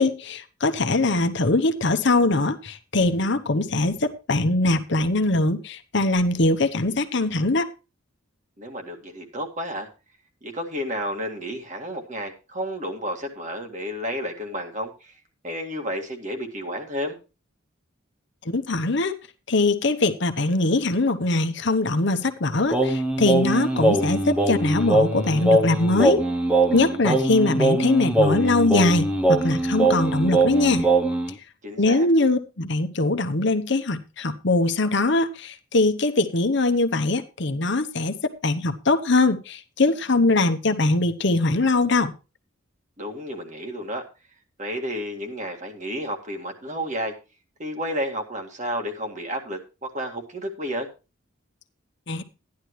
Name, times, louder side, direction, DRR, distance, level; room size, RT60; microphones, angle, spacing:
voice 1, 0.0-7.7 18.4-19.2 19.5-26.2 26.7-30.9 31.8-42.1 52.1-52.2, left 2 dB, 60° left, 7 dB, 1.0 m, -22 dB
voice 2, 8.6-9.9 10.4-17.2 31.6-32.1 43.0-44.0 44.6-47.2 47.6-50.9, equal, 35° right, 3 dB, 2.0 m, -31 dB
Singing, 22.7-31.3, right 2 dB, 5° right, 0.9 m, -21 dB
13.5 x 10.5 x 3.1 m, 0.30 s
head